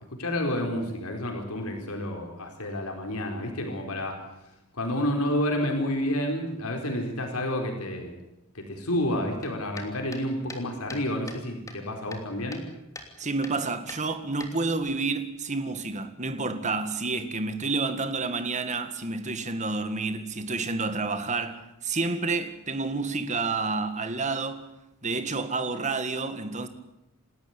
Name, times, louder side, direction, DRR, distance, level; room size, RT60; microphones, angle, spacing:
voice 1, 0.2-4.2 4.7-8.1 8.5-12.7, left 1 dB, 85° left, 4.4 m, -29 dB
sound 1, 9.4-11.4 11.7-12.7 12.9-13.1 13.4-13.6 13.9-14.9, left 2 dB, 15° left, 3.0 m, -43 dB
voice 2, 13.2-24.6 25.0-26.7, right 3 dB, 35° right, 2.0 m, -29 dB
28.5 x 13.5 x 9.7 m
head